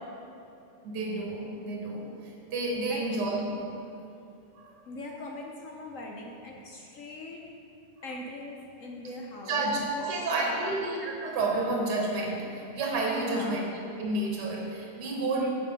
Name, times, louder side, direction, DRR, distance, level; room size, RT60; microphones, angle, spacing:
voice 1, 0.8-3.9 4.6-4.8 9.0-9.2 9.5-13.6 14.0-15.5, right 2 dB, 60° right, -1 dB, 1.8 m, -30 dB
voice 2, 4.9-7.4 8.0-9.7 9.9-10.8 13.2-13.6 15.4-15.5, left 2 dB, 60° left, 0 dB, 0.9 m, -40 dB
8.6 x 6.4 x 5.2 m, 2.6 s
omnidirectional pair, 2.1 m